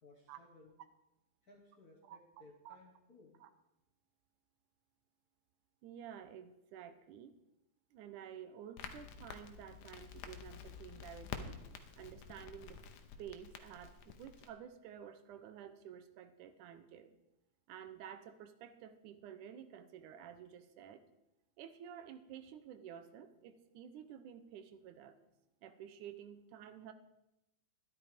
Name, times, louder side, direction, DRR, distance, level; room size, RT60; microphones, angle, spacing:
voice 1, 0.0-0.8 1.4-3.4, left 2 dB, 45° left, 0 dB, 1.3 m, -61 dB
voice 2, 5.8-7.3 7.9-11.6 12.0-12.8 13.2-17.1 17.7-21.0 21.6-25.2 25.6-26.9, right 9 dB, 80° right, 11 dB, 2.3 m, -51 dB
Crackle, 8.8-14.5, left 7 dB, 85° left, 2.4 m, -49 dB
13.0 x 11.0 x 5.1 m, 0.89 s
omnidirectional pair, 3.5 m